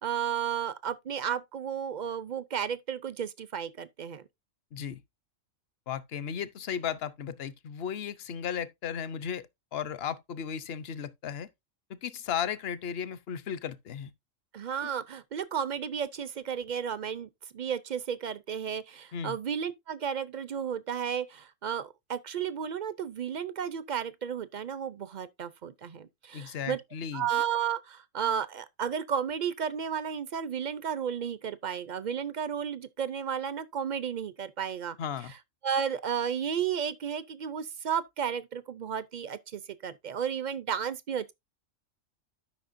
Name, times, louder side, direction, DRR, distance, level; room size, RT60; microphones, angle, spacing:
voice 1, 0.0-4.2 14.5-26.8 27.1-35.0 35.6-41.3, right 8 dB, 55° right, 0.5 m, -33 dB
voice 2, 5.9-11.5 11.9-14.1 14.8-14.9 19.1-19.4 26.3-27.3 35.0-35.3, left 8 dB, 55° left, 0.9 m, -35 dB
12.0 x 5.6 x 2.6 m
omnidirectional pair, 1.4 m